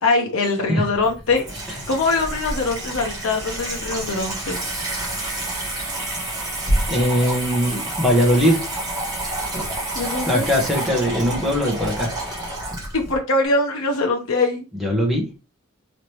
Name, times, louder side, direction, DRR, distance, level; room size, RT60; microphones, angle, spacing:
voice 1, 0.0-1.5 1.9-4.6 9.9-10.5 12.9-14.6, left 3 dB, 90° left, 0.7 m, -22 dB
Water tap faucet / Sink (filling or washing), 0.9-13.2, right 1 dB, 20° right, 1.6 m, -28 dB
voice 2, 6.9-8.7 10.3-12.1 14.8-15.2, equal, ahead, 1.1 m, -20 dB
4.0 x 3.2 x 3.0 m
head